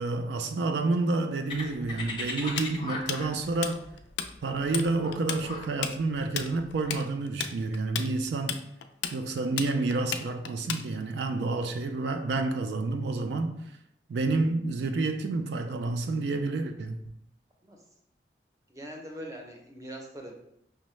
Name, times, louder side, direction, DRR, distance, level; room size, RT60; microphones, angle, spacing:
voice 1, 0.0-3.9 4.4-8.6 9.1-13.6 14.1-17.0, right 3 dB, 75° right, 0.3 m, -29 dB
sound 1, 1.5-7.0, left 2 dB, 25° left, 0.6 m, -39 dB
Tools, 2.6-4.3 4.6-4.9 5.1-11.2, left 8 dB, 80° left, 0.3 m, -33 dB
voice 2, 18.7-20.3, equal, 20° right, 0.5 m, -42 dB
5.3 x 2.0 x 3.1 m
head